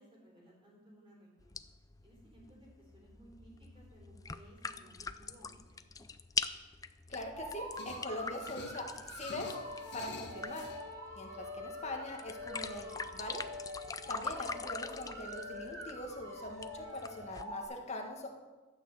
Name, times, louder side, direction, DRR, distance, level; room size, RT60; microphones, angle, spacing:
voice 1, 0.0-1.6 2.0-5.9, equal, 25° right, -3 dB, 4.1 m, -59 dB
sound 1, 1.4-17.4, left 5 dB, 15° left, 0.4 m, -44 dB
voice 2, 7.1-9.6 9.9-10.6 11.1-13.4 14.1-18.3, left 1 dB, 35° left, 2 dB, 1.6 m, -42 dB
sound 2, 7.3-17.6, left 1 dB, 75° right, 2.7 m, -45 dB
sound 3, 7.7-10.8, left 3 dB, 55° left, 1.3 m, -49 dB
12.5 x 6.4 x 7.8 m, 1.3 s
head